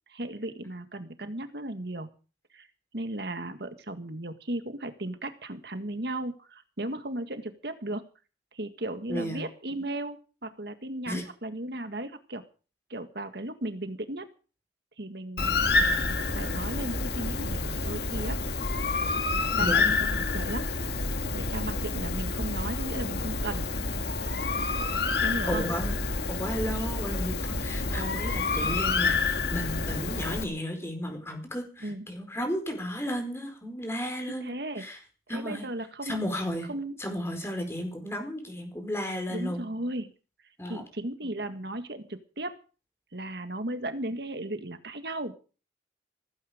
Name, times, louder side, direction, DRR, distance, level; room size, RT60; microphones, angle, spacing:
voice 1, 0.1-2.1 2.5-2.7 2.9-8.0 8.5-12.4 12.9-14.3 15.0-18.4 19.5-20.7 21.3-23.7 25.2-25.6 28.6-28.9 31.8-32.1 34.4-34.9 35.3-36.2 36.7-37.0 39.3-40.1 40.7-42.6 43.1-45.3, right 1 dB, 65° right, 9 dB, 1.8 m, -36 dB
voice 2, 9.1-9.4 11.1-11.3 19.6-19.9 25.5-25.9 26.3-35.0 35.3-35.7 36.0-36.7 37.0-39.6 40.6-40.8, equal, 15° left, 4 dB, 4.6 m, -33 dB
Bird, 15.4-30.4, left 3 dB, 60° left, 1.8 m, -28 dB
16.5 x 15.5 x 5.1 m, 0.37 s
head